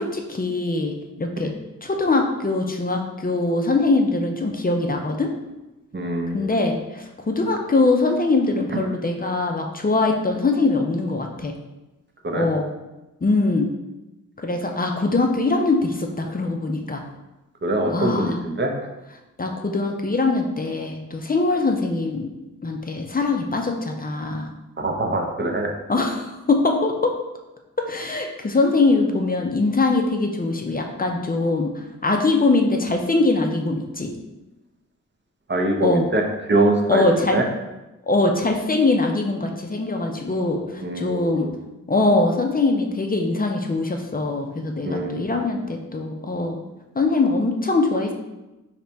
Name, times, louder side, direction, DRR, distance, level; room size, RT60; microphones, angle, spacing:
voice 1, 0.0-1.5 1.8-5.3 6.3-11.5 12.3-12.7 13.2-13.7 14.4-17.0 17.9-18.4 19.4-22.3 22.6-24.5 25.9-27.1 27.8-34.1 35.8-36.1 36.9-37.4 38.1-41.5 41.9-46.6 47.0-48.1, left 3 dB, 30° left, 2 dB, 0.5 m, -22 dB
voice 2, 5.9-6.5 8.7-8.8 12.2-12.5 17.6-18.7 24.8-25.7 35.5-37.0 37.3-37.4 40.8-41.5 44.8-45.3, right 1 dB, 35° right, 3 dB, 0.6 m, -23 dB
4.0 x 2.9 x 3.3 m, 1.0 s
wide cardioid pair, 85°, 31 cm